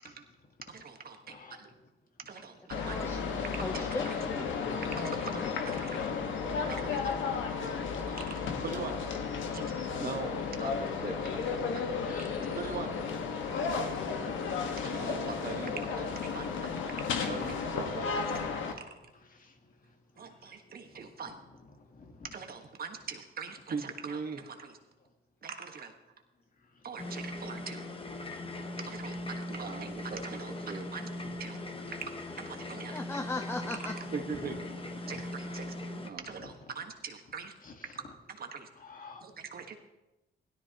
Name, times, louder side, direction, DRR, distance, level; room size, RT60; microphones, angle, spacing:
voice 1, 0.6-1.7 2.2-3.0 3.7-4.2 4.9-6.1 6.7-7.2 8.1-9.1 9.5-9.7 10.0-11.9 12.2-13.1 13.6-13.7 14.2-18.9 20.2-21.4 22.2-24.8 25.4-26.0 26.8-27.8 28.8-31.1 31.4-31.6 32.0-33.0 33.6-34.6 35.1-35.7 36.0-37.5 38.0-38.7 39.2-39.7, right 5 dB, 50° right, 5 dB, 1.5 m, -42 dB
voice 2, 1.3-1.6 6.6-6.7 10.0-10.4 12.0-12.6 13.4-15.2 16.9-17.0 17.8-18.1 20.2-20.3 21.9-22.3 31.2-31.3 34.3-34.5 36.4-36.5 37.6-37.7 38.8-39.2, left 4 dB, 45° left, 5 dB, 1.7 m, -49 dB
sound 1, 2.7-18.7, left 5 dB, 75° left, 1.5 m, -33 dB
voice 3, 2.8-4.5 32.9-34.1, left 2 dB, 10° left, 8 dB, 0.6 m, -38 dB
sound 2, 27.0-36.1, left 1 dB, 25° left, 1.2 m, -40 dB
16.5 x 13.0 x 3.0 m, 0.98 s
cardioid pair, 90°, 20 cm